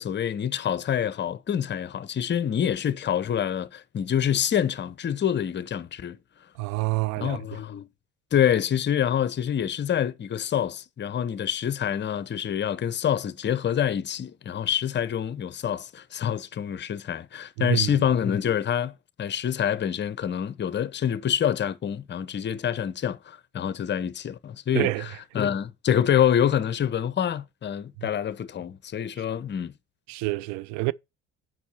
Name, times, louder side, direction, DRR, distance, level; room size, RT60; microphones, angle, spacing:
voice 1, 0.0-6.2 7.2-7.9 8.3-18.9 19.2-24.9 25.3-29.7, left 9 dB, 30° left, 0.8 m, -26 dB
voice 2, 6.6-7.6 17.6-18.1 24.7-25.1 28.0-28.1 29.2-29.3 30.1-30.9, right 21 dB, 50° right, 0.5 m, -28 dB
8.3 x 5.5 x 4.3 m
figure-of-eight pair, 60°, 37 cm